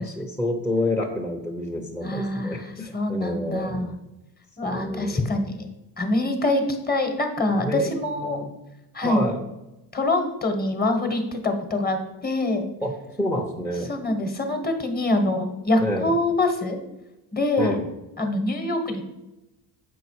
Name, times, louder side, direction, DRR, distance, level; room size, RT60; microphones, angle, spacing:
voice 1, 0.0-4.0 4.7-5.3 7.6-7.9 8.2-8.5 9.0-9.4 12.8-13.9 15.8-16.1 17.6-17.8, left 1 dB, 5° left, 2 dB, 0.7 m, -28 dB
voice 2, 2.0-2.7 2.9-3.9 4.6-5.7 6.0-8.4 8.9-9.2 9.9-12.7 13.9-16.8 17.3-17.8 18.2-19.0, left 2 dB, 20° left, 6 dB, 1.1 m, -25 dB
7.1 x 5.1 x 4.7 m, 0.98 s
cardioid pair, 115°, 42 cm